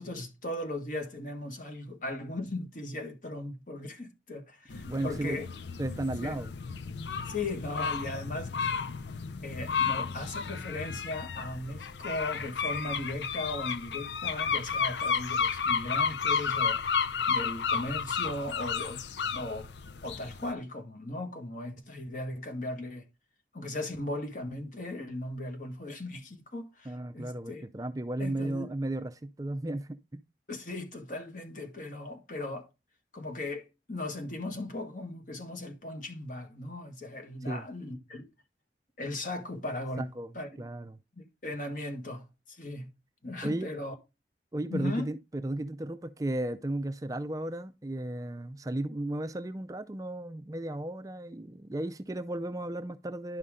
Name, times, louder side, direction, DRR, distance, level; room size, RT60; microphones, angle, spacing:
voice 1, 0.0-5.5 6.2-6.4 7.3-8.5 9.4-16.8 17.3-19.0 19.3-19.7 20.0-23.1 23.5-27.6 28.2-28.7 30.5-32.7 33.1-38.2 39.0-40.1 40.3-40.6 41.2-42.9 43.2-43.9 44.7-45.1, left 2 dB, 50° left, 1.7 m, -37 dB
sound 1, 4.7-20.5, left 6 dB, 85° left, 0.6 m, -32 dB
voice 2, 4.9-5.4 5.8-6.5 26.9-30.2 37.5-37.7 40.0-40.3 40.6-41.0 43.4-43.7 44.5-45.2 45.4-53.4, right 1 dB, 20° right, 0.4 m, -34 dB
11.0 x 5.5 x 3.7 m
head